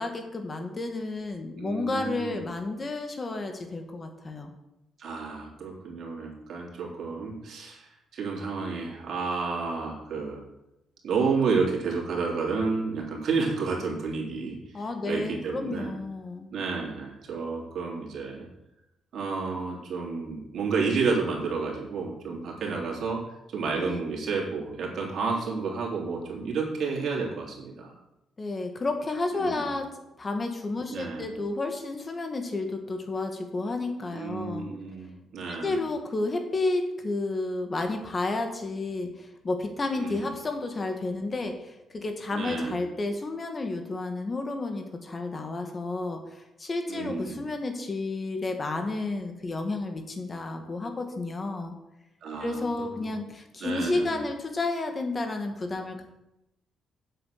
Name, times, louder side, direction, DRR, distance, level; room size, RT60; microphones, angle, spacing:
voice 1, 0.0-4.5 14.7-16.5 23.8-24.0 28.4-29.9 30.2-34.7 35.5-46.2 46.6-51.7 52.4-56.0, left 2 dB, 30° left, 5 dB, 1.9 m, -31 dB
voice 2, 1.6-2.5 5.0-10.4 11.0-16.0 16.5-18.5 19.1-23.2 23.5-27.9 29.3-29.7 30.9-31.3 34.1-35.8 39.9-40.3 42.3-42.7 46.9-47.4 52.2-53.1 53.6-54.2, right 4 dB, 65° right, -1 dB, 3.4 m, -31 dB
7.8 x 7.8 x 6.7 m, 0.90 s
cardioid pair, 90°, 0 cm